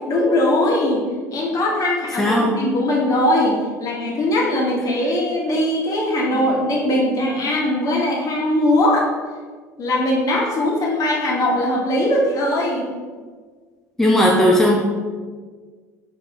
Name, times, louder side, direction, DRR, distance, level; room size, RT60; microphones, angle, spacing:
voice 1, 0.1-1.0 1.3-9.0 9.8-12.8, left 1 dB, 40° left, -2 dB, 1.6 m, -20 dB
voice 2, 2.2-2.6 6.3-6.5 14.0-14.8, equal, 5° left, -2 dB, 0.7 m, -16 dB
6.0 x 4.6 x 3.7 m, 1.5 s
figure-of-eight pair, 65°, 9 cm